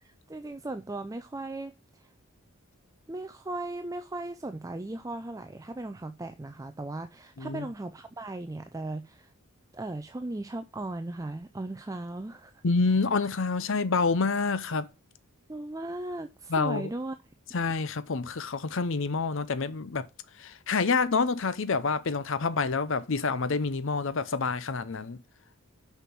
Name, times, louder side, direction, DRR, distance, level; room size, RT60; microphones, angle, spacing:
voice 1, 0.0-2.1 3.1-9.3 9.7-12.5 15.5-17.2, right 2 dB, 15° right, 0.4 m, -37 dB
voice 2, 12.6-14.9 16.5-16.9 17.5-20.1 20.4-25.2, left 4 dB, 60° left, 0.7 m, -27 dB
6.8 x 5.9 x 6.0 m
head